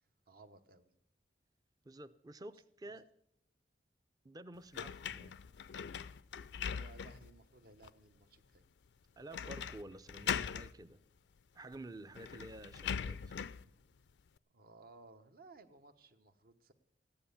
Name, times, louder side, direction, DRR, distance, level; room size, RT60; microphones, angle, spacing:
voice 1, 0.3-0.9 2.5-2.9 6.7-8.6 14.5-16.7, right 3 dB, 55° right, 1.0 m, -59 dB
voice 2, 1.8-3.1 4.2-5.4 9.2-11.0 11.5-13.5, right 1 dB, 20° right, 0.5 m, -51 dB
sound 1, 4.7-7.3 7.8-7.9 9.3-9.8 10.1-10.7 11.7-11.8 12.1-13.6, left 7 dB, 80° left, 0.4 m, -40 dB
15.0 x 10.0 x 7.0 m
head